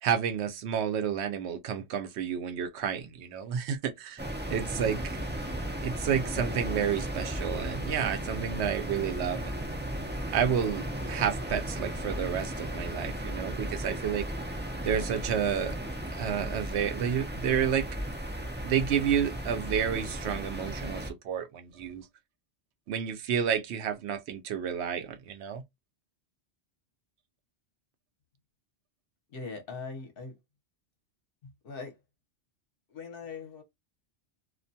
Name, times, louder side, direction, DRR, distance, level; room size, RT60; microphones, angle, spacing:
voice 1, 0.0-4.2 4.5-5.2 5.8-9.6 10.3-14.3 14.8-15.8 16.1-17.9 18.6-22.1 22.9-25.6, right 8 dB, 75° right, 0.8 m, -30 dB
sound 1, 4.2-21.1, right 1 dB, 20° right, 0.3 m, -35 dB
voice 2, 29.3-30.4 31.4-32.0 32.9-33.6, left 4 dB, 60° left, 1.0 m, -41 dB
2.4 x 2.2 x 2.6 m
omnidirectional pair, 1.1 m